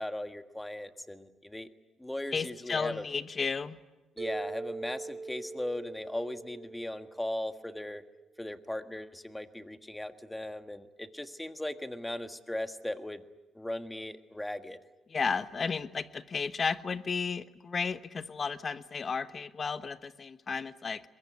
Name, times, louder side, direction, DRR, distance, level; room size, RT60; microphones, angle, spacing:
voice 1, 0.0-1.7 2.0-3.0 4.2-8.0 8.4-13.2 13.5-14.8, left 1 dB, 10° left, 9 dB, 1.5 m, -38 dB
voice 2, 2.3-3.8 15.1-21.0, left 5 dB, 40° left, 13 dB, 1.2 m, -33 dB
Mallet percussion, 4.2-8.3, right 4 dB, 30° right, 1.8 m, -43 dB
22.5 x 22.0 x 9.9 m, 1.2 s
cardioid pair, 90°, 0 cm